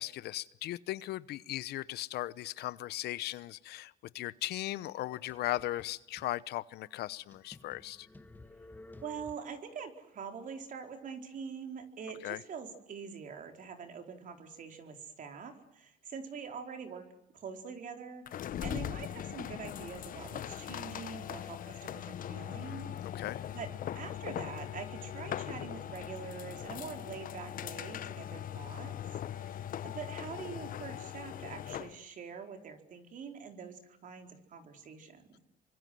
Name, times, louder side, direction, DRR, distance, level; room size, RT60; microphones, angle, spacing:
voice 1, 0.0-8.1 12.2-12.4 22.5-23.5, left 15 dB, 75° left, 18 dB, 1.0 m, -38 dB
sound 1, 4.9-6.3 6.8-6.9 7.3-9.7, left 2 dB, 10° left, 1.6 m, -54 dB
voice 2, 9.0-17.0 17.3-23.3 23.5-28.9 29.3-35.4, right 6 dB, 50° right, 5 dB, 4.3 m, -45 dB
sound 2, 18.3-32.0, left 10 dB, 55° left, 1.1 m, -40 dB
27.5 x 24.5 x 7.8 m, 0.83 s
cardioid pair, 110°, 17 cm